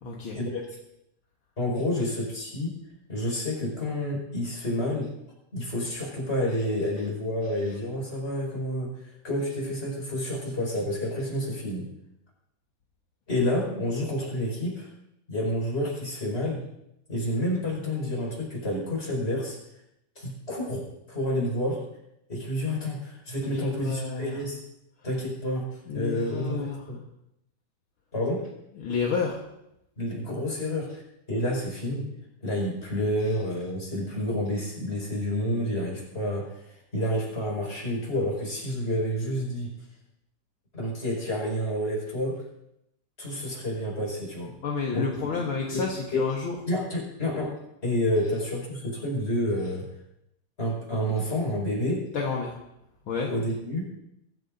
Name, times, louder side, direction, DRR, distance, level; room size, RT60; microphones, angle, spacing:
voice 1, 0.0-0.4 23.4-24.4 25.9-26.9 28.8-29.4 44.6-46.6 52.1-52.6 53.1-53.3, left 5 dB, 55° left, -1 dB, 1.7 m, -30 dB
voice 2, 1.6-2.8 3.1-5.1 5.5-11.9 13.3-14.9 15.3-16.6 17.1-19.6 20.2-21.8 22.3-24.6 25.0-25.7 25.9-26.5 26.9-27.0 28.1-28.4 30.0-31.0 31.3-32.1 32.4-39.7 40.7-42.4 43.2-44.5 44.9-45.1 45.5-45.8 46.1-46.2 46.7-47.5 47.8-49.9 50.6-52.0 53.2-53.9, left 1 dB, 20° left, -3 dB, 5.7 m, -29 dB
23.5 x 14.5 x 2.7 m, 0.82 s
omnidirectional pair, 3.7 m